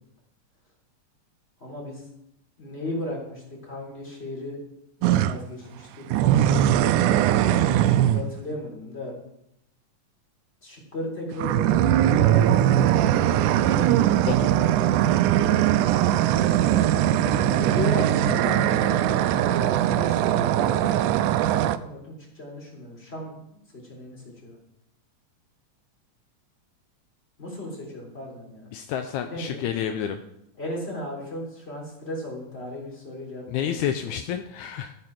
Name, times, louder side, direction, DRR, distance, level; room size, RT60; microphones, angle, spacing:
voice 1, 1.6-2.0 2.6-4.6 5.0-6.2 7.5-9.1 10.6-12.8 15.5-15.8 17.2-24.6 27.4-28.7 29.2-30.0 30.6-33.9, left 1 dB, 20° left, -2 dB, 3.6 m, -36 dB
sound 1, 5.0-5.4 6.1-8.3 11.3-21.8, right 11 dB, 90° right, 2.0 m, -20 dB
voice 2, 28.7-30.2 33.5-35.0, left 9 dB, 80° left, 7 dB, 2.0 m, -29 dB
13.0 x 6.7 x 5.9 m, 0.79 s
omnidirectional pair, 3.5 m